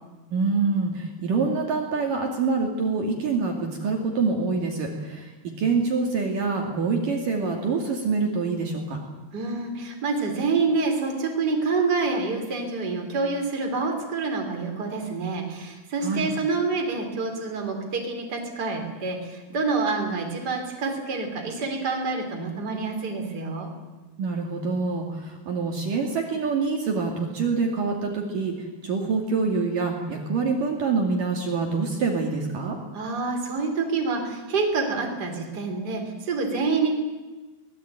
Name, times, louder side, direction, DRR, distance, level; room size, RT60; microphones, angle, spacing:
voice 1, 0.3-9.0 16.0-16.3 24.2-28.5 28.8-32.8, right 4 dB, 55° right, 1 dB, 3.8 m, -26 dB
voice 2, 9.3-23.7 32.9-36.9, right 4 dB, 25° right, 2 dB, 3.8 m, -27 dB
24.0 x 19.0 x 9.1 m, 1.2 s
omnidirectional pair, 4.7 m